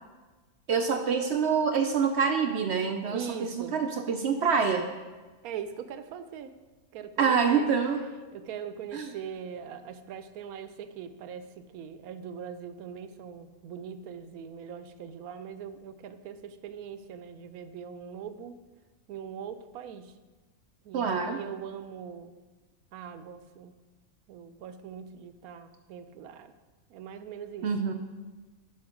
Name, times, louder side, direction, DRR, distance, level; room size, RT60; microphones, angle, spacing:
voice 1, 0.7-4.9 7.2-8.0 8.9-9.1 20.9-21.4 27.6-27.9, right 6 dB, 65° right, 6 dB, 0.7 m, -26 dB
voice 2, 3.1-3.8 5.4-6.6 6.9-7.7 8.3-18.6 19.1-20.1 20.8-22.3 22.9-23.7 24.3-26.5 26.9-27.7, right 7 dB, 85° right, 11 dB, 1.1 m, -41 dB
8.6 x 5.7 x 5.0 m, 1.3 s
omnidirectional pair, 1.5 m